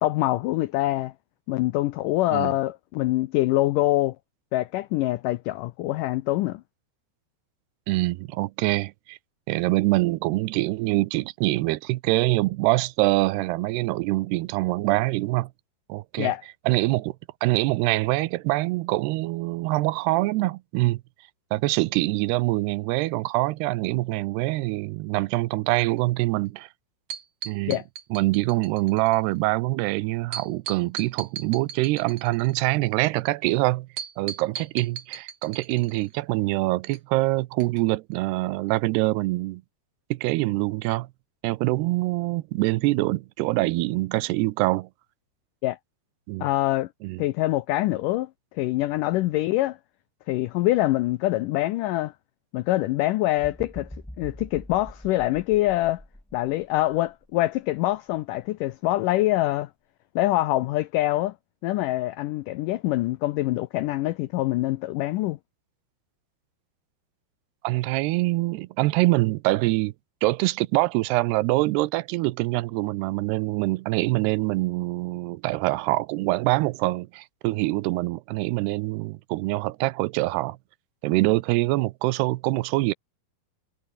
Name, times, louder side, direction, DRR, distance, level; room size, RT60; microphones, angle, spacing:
voice 1, 0.0-1.1 1.5-4.2 4.5-6.6 16.2-16.4 27.7-27.8 45.6-45.8 46.4-46.9 47.2-48.3 48.5-49.8 50.3-52.1 52.5-53.9 54.2-56.0 56.3-59.7 60.1-61.3 61.6-65.4, left 16 dB, 90° left, 1.8 m, -24 dB
voice 2, 7.9-9.2 9.5-15.5 15.9-16.3 16.7-17.2 17.4-21.0 21.5-26.7 27.5-27.8 28.1-33.9 34.2-39.6 40.1-41.1 41.4-44.9 46.3-46.5 47.0-47.2 67.6-69.9 70.2-80.6 81.0-82.9, right 20 dB, 90° right, 2.8 m, -24 dB
sound 1, 27.1-29.2 30.3-32.8 34.0-36.1 36.9-37.0 37.6-37.8 38.1-38.2, right 8 dB, 55° right, 3.7 m, -37 dB
sound 2, 53.4-57.4 57.9-58.1, equal, 5° left, 0.6 m, -44 dB
omnidirectional pair, 4.6 m